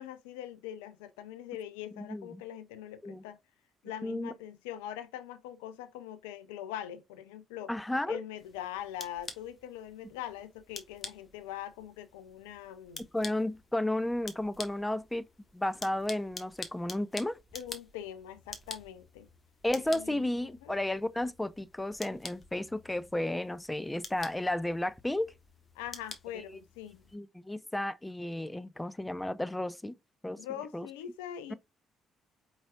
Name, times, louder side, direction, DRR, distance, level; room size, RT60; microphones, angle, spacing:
voice 1, 0.0-3.4 3.8-7.7 8.1-13.1 17.5-19.3 19.9-20.8 25.7-27.1 30.4-31.5, left 11 dB, 75° left, 0.5 m, -42 dB
voice 2, 2.0-2.4 3.0-3.2 4.0-4.3 7.7-8.2 13.1-15.3 15.5-17.4 19.6-25.3 27.1-30.0 30.2-30.4 30.7-30.9, left 1 dB, 10° left, 0.4 m, -33 dB
sound 1, 8.4-27.2, left 3 dB, 30° left, 1.4 m, -48 dB
5.0 x 3.9 x 2.3 m
hypercardioid pair, 45°, 0 cm